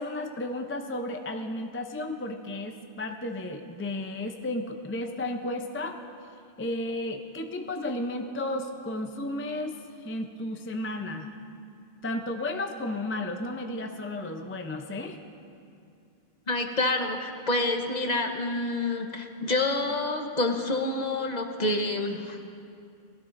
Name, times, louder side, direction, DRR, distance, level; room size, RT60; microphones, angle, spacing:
voice 1, 0.0-6.0 6.6-11.3 12.0-15.2, left 1 dB, 20° left, 5 dB, 0.4 m, -33 dB
voice 2, 16.5-22.4, left 2 dB, 45° left, 4 dB, 1.0 m, -28 dB
19.5 x 16.0 x 2.6 m, 2.5 s
omnidirectional pair, 1.0 m